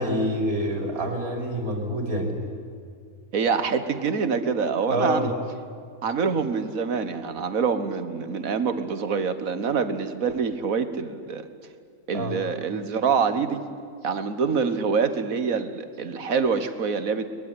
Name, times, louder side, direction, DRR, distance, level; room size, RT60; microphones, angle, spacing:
voice 1, 0.0-2.3 4.9-5.3 12.1-12.3, equal, 90° right, 2 dB, 3.7 m, -26 dB
voice 2, 3.3-5.3 6.0-11.5 12.1-13.6 14.0-17.3, right 5 dB, 75° right, 10 dB, 1.8 m, -25 dB
22.0 x 21.0 x 9.9 m, 2.2 s
omnidirectional pair, 1.5 m